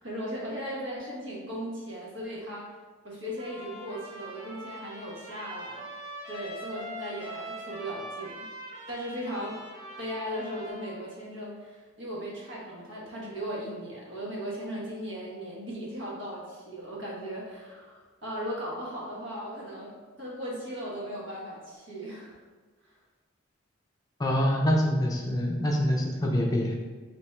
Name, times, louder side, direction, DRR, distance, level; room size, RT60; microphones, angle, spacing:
voice 1, 0.0-2.7 3.0-5.8 6.3-8.5 8.9-9.6 10.0-22.4 22.8-22.9, equal, 60° right, -4 dB, 1.2 m, -37 dB
Trumpet, 3.4-11.0, right 1 dB, 35° right, 1.5 m, -42 dB
voice 2, 24.2-26.7, equal, 20° left, -1 dB, 0.6 m, -25 dB
3.5 x 2.9 x 4.3 m, 1.4 s
head